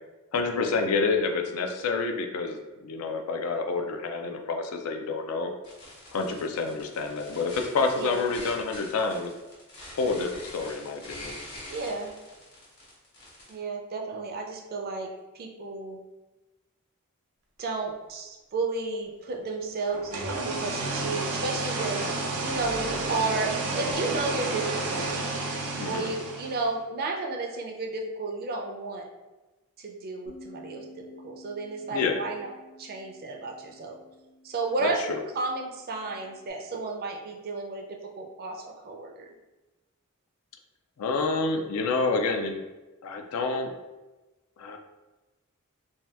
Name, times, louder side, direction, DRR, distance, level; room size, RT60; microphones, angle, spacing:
voice 1, 0.3-5.5 6.1-9.3 9.9-11.4 25.8-26.1 31.9-32.2 34.8-35.2 41.0-42.6 43.0-43.7 44.6-44.8, left 4 dB, 80° left, 4 dB, 0.4 m, -28 dB
sound 1, 5.6-13.5, left 1 dB, 50° left, 1.2 m, -44 dB
voice 2, 11.7-12.1 13.5-16.0 17.6-25.1 25.9-29.1 29.8-32.5 32.8-34.0 34.4-39.3, right 3 dB, 45° right, 2 dB, 0.4 m, -33 dB
sound 2, 19.9-26.7, right 3 dB, 90° right, 0.6 m, -31 dB
Bass guitar, 30.3-36.5, left 1 dB, 10° left, 0.5 m, -52 dB
2.7 x 2.2 x 3.3 m, 1.1 s
head